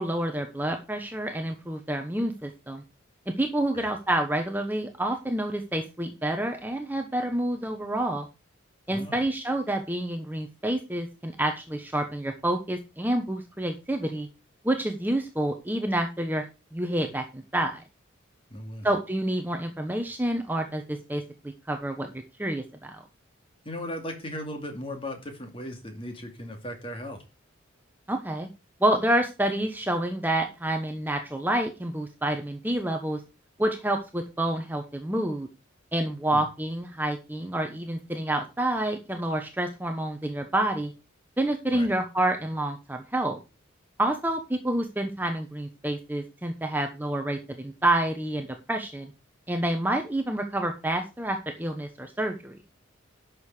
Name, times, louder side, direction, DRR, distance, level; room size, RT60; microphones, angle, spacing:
voice 1, 0.0-2.8 3.3-8.3 8.9-14.3 14.6-16.4 16.7-17.8 18.8-21.2 21.7-23.0 28.1-28.5 28.8-33.2 33.6-35.5 35.9-40.9 41.4-43.4 44.0-49.1 49.5-52.5, right 1 dB, 10° right, 5 dB, 1.0 m, -28 dB
voice 2, 8.9-9.2 18.5-18.9 23.6-27.2 36.3-36.4 41.7-41.9, left 1 dB, 25° left, 4 dB, 2.5 m, -37 dB
11.0 x 6.8 x 4.9 m, 0.28 s
head